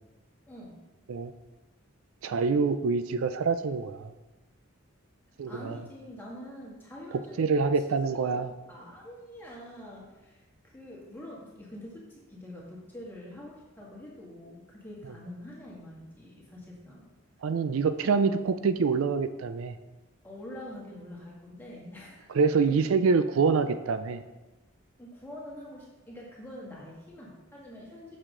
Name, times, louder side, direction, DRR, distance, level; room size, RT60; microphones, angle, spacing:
voice 1, 0.5-0.8 5.5-7.7 8.2-8.4 8.7-17.1 17.9-18.1 20.2-22.7 25.0-28.2, left 1 dB, 10° left, -4 dB, 1.7 m, -45 dB
voice 2, 2.2-4.1 5.4-5.8 7.4-8.5 17.4-19.8 22.3-24.2, right 5 dB, 80° right, 10 dB, 0.4 m, -26 dB
7.4 x 6.5 x 3.8 m, 1.1 s
head